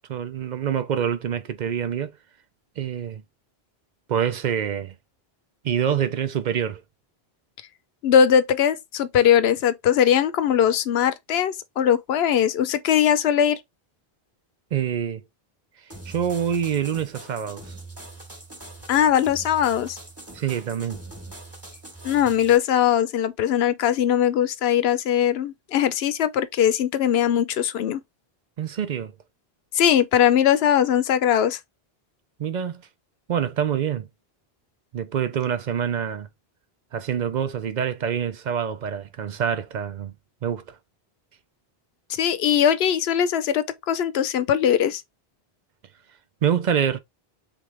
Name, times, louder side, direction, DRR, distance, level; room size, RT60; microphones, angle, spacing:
voice 1, 0.1-2.1 2.8-3.2 4.1-4.9 5.6-6.8 14.7-15.2 16.1-17.7 20.3-21.0 28.6-29.1 32.4-32.8 33.3-34.1 34.9-36.3 36.9-40.1 40.4-40.8 46.4-47.0, right 8 dB, 55° right, 0.6 m, -26 dB
voice 2, 8.0-13.6 18.9-20.0 22.0-28.0 29.7-31.6 42.1-45.0, left 9 dB, 80° left, 0.9 m, -20 dB
sound 1, 15.9-22.6, right 2 dB, 15° right, 1.2 m, -42 dB
3.6 x 3.5 x 3.2 m
omnidirectional pair, 1.0 m